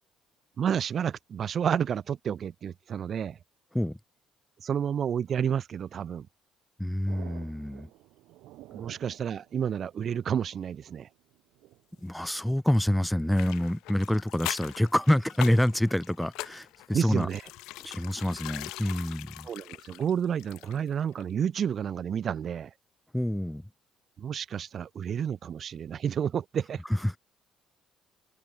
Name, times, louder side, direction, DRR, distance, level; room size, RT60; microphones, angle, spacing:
voice 1, 0.6-3.4 4.6-6.3 8.7-11.1 16.9-17.4 19.4-22.7 24.2-26.8, right 8 dB, 50° right, 0.3 m, -30 dB
voice 2, 6.8-7.9 12.0-17.3 17.8-19.5 23.1-23.6 26.9-27.2, left 1 dB, 5° left, 0.8 m, -27 dB
sound 1, 7.1-12.1, right 17 dB, 80° right, 2.3 m, -51 dB
sound 2, 13.3-20.9 21.2-21.3, left 19 dB, 85° left, 1.1 m, -42 dB
cardioid pair, 85°, 0 cm